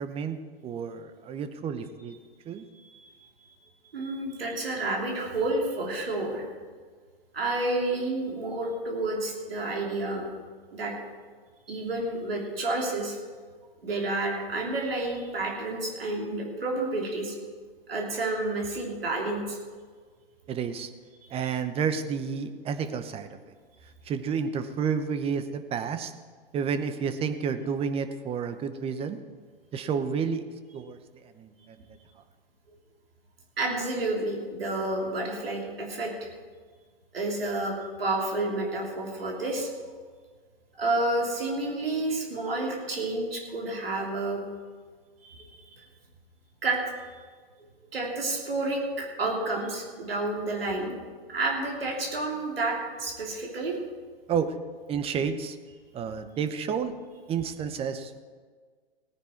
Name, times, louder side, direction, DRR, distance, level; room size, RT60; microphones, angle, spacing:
voice 1, 0.0-2.2 2.5-2.7 20.5-20.9 21.3-23.4 24.0-26.1 26.5-29.2 29.7-30.4 30.7-31.0 31.2-31.8 54.3-54.5 54.9-55.6 55.9-56.9 57.3-58.2, right 6 dB, 20° right, 10 dB, 0.9 m, -30 dB
voice 2, 3.9-6.4 7.3-10.3 10.7-10.9 11.7-13.2 13.8-17.3 17.9-19.6 33.6-36.3 37.1-39.7 40.8-44.4 45.2-45.9 46.6-46.8 47.9-50.9 51.3-53.7, right 2 dB, 75° right, 0 dB, 3.4 m, -30 dB
17.5 x 9.8 x 4.6 m, 1.6 s
figure-of-eight pair, 115°, 29 cm